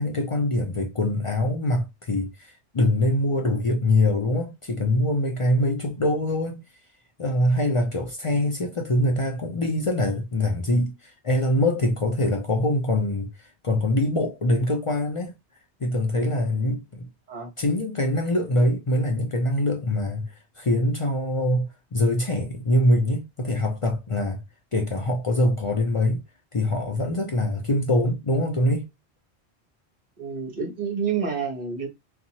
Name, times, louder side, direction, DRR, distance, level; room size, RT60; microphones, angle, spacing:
voice 1, 0.0-6.6 7.2-15.3 15.8-17.1 17.6-24.4 24.7-26.2 26.5-28.9, left 1 dB, 45° left, 0.4 m, -24 dB
voice 2, 30.2-31.9, right 6 dB, 45° right, 1.0 m, -28 dB
2.7 x 2.3 x 2.7 m
omnidirectional pair, 1.1 m